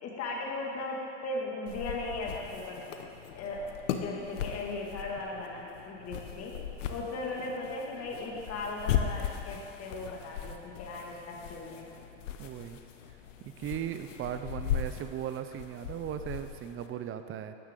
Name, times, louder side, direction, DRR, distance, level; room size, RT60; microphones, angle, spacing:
voice 1, 0.0-2.8 3.3-3.6 3.9-6.5 6.9-11.8, left 2 dB, 40° left, -2 dB, 2.2 m, -37 dB
sound 1, 1.7-16.9, left 9 dB, 90° left, 0.8 m, -38 dB
voice 2, 12.4-12.8 13.4-17.5, right 10 dB, 35° right, 10 dB, 0.6 m, -37 dB
12.0 x 9.8 x 3.8 m, 2.8 s
supercardioid pair, 105°, 36 cm